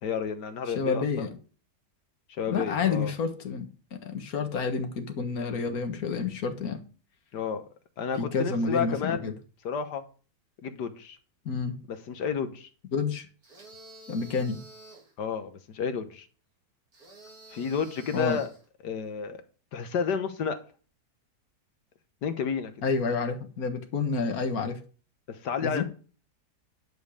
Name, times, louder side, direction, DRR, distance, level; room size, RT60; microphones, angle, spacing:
voice 1, 0.0-1.3 2.4-3.1 7.3-7.6 8.0-9.3 9.6-10.0 10.6-11.2 11.9-12.7 15.2-16.3 17.5-18.5 18.8-19.4 19.7-20.6 22.2-22.7 25.3-25.8, left 6 dB, 80° left, 1.8 m, -31 dB
voice 2, 0.8-1.3 2.5-6.8 8.2-9.3 11.5-11.7 12.9-13.3 14.1-14.6 18.1-18.4 22.8-24.8 25.6-25.8, left 5 dB, 60° left, 1.9 m, -29 dB
sound 1, 13.4-15.1 16.9-18.6, right 2 dB, 60° right, 4.1 m, -50 dB
10.5 x 5.4 x 6.4 m
omnidirectional pair, 1.8 m